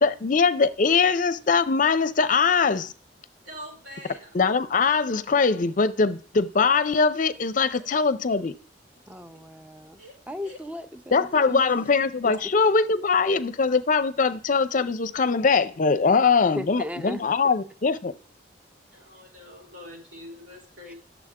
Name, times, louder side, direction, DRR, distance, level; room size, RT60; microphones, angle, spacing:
voice 1, 0.0-2.9 4.3-8.5 11.1-18.1, left 5 dB, 45° left, 0.5 m, -22 dB
voice 2, 3.5-4.3 10.0-10.2 10.4-10.6 18.9-21.0, equal, 90° right, 4.2 m, -44 dB
voice 3, 9.1-10.0 10.3-11.6 16.6-17.2 20.9-21.0, left 1 dB, 10° right, 0.5 m, -36 dB
10.5 x 7.0 x 3.6 m
head